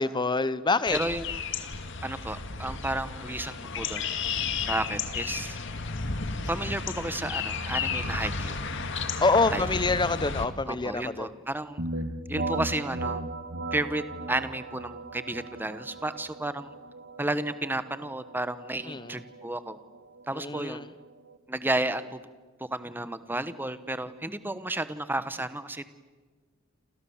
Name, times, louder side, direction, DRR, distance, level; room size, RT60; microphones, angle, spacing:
voice 1, 0.0-1.0 9.2-11.3 18.9-19.2 20.3-20.9, left 3 dB, 20° left, 15 dB, 0.9 m, -26 dB
sound 1, 0.8-10.5, left 5 dB, 65° left, 2.1 m, -33 dB
voice 2, 0.9-1.4 2.0-4.1 4.7-5.6 6.5-8.5 9.5-9.6 10.7-11.8 12.3-13.2 13.7-14.0 14.3-16.7 17.2-19.8 20.3-20.9 21.5-22.2 22.6-25.9, right 1 dB, 10° right, 12 dB, 1.1 m, -32 dB
sound 2, 11.8-21.4, right 2 dB, 55° right, 1.7 m, -37 dB
28.5 x 28.0 x 7.2 m, 1.4 s
head